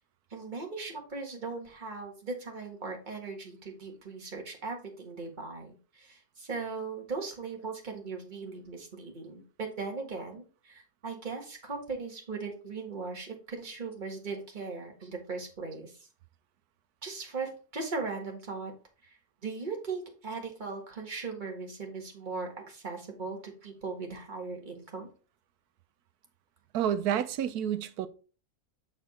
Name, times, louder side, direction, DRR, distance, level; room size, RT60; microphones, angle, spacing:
voice 1, 0.3-16.1 17.0-18.7 19.4-25.1, right 4 dB, 30° right, 1.7 m, -38 dB
voice 2, 26.7-28.1, right 10 dB, 90° right, 1.2 m, -29 dB
7.0 x 4.3 x 4.2 m
omnidirectional pair, 1.6 m